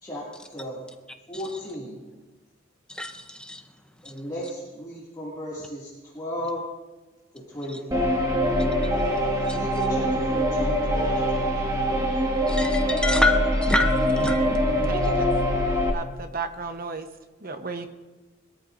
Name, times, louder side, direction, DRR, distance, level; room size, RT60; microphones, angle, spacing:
voice 1, 0.0-0.8 1.3-2.0 4.0-6.7 7.3-8.0 9.4-11.7, equal, 20° left, -8 dB, 2.4 m, -35 dB
voice 2, 2.9-3.6 9.5-9.6 12.5-14.6, left 2 dB, 5° left, 5 dB, 0.7 m, -26 dB
sound 1, 7.9-15.9, equal, 20° right, 1.7 m, -23 dB
voice 3, 14.9-15.2 15.9-17.1 17.4-17.9, right 4 dB, 45° right, 7 dB, 1.0 m, -34 dB
21.0 x 13.5 x 2.6 m, 1.2 s
head